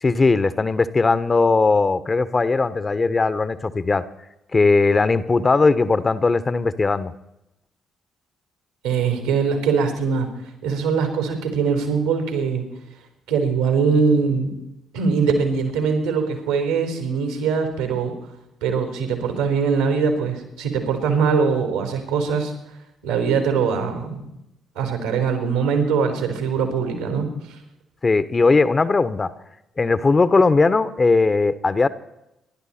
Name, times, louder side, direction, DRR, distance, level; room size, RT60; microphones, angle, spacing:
voice 1, 0.0-4.0 4.5-7.1 28.0-29.3 29.8-31.9, left 3 dB, 30° left, 14 dB, 1.1 m, -18 dB
voice 2, 8.8-10.3 10.6-12.6 13.3-14.5 14.9-18.1 18.6-22.5 23.0-24.2 24.7-27.3, right 5 dB, 80° right, 5 dB, 4.1 m, -22 dB
27.0 x 12.0 x 4.3 m, 0.88 s
figure-of-eight pair, 45°, 0 cm